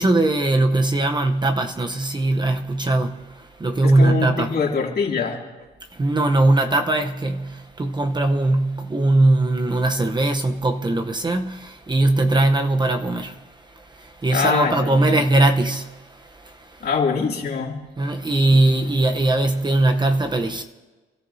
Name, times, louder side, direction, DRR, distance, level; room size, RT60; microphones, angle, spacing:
voice 1, 0.0-3.2 3.6-4.5 6.0-13.3 14.0-15.9 18.0-20.6, right 2 dB, 20° right, 0.9 m, -20 dB
voice 2, 3.8-5.4 14.3-15.3 16.8-17.8, left 5 dB, 50° left, 2.8 m, -24 dB
28.5 x 13.5 x 2.8 m
cardioid pair, 90°, 20 cm